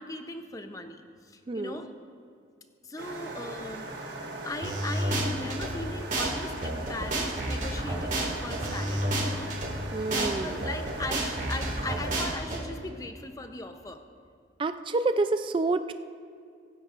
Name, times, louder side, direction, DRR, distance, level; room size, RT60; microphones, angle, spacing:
voice 1, 0.0-1.9 2.8-3.9 4.4-9.7 10.1-14.0, left 2 dB, 20° left, 7 dB, 0.6 m, -38 dB
voice 2, 1.5-1.8 9.9-10.7 14.6-15.9, right 3 dB, 25° right, 10 dB, 0.3 m, -28 dB
sound 1, 3.0-12.3, right 2 dB, 60° right, 1.4 m, -40 dB
sound 2, 4.6-5.7 6.1-6.3 6.6-9.7 10.1-10.3 10.6-12.6, right 1 dB, 40° right, 2.0 m, -30 dB
23.5 x 10.0 x 2.5 m, 2.3 s
head